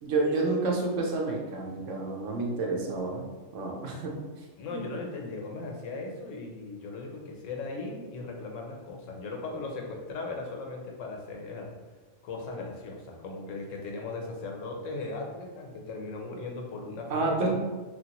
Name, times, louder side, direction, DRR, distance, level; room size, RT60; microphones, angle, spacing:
voice 1, 0.0-3.3 3.5-4.2 4.7-4.8 17.1-17.6, right 3 dB, 75° right, 0 dB, 1.0 m, -29 dB
voice 2, 4.6-11.7 12.2-17.6, left 3 dB, 85° left, 1 dB, 1.0 m, -38 dB
3.0 x 2.4 x 2.9 m, 1.3 s
omnidirectional pair, 1.3 m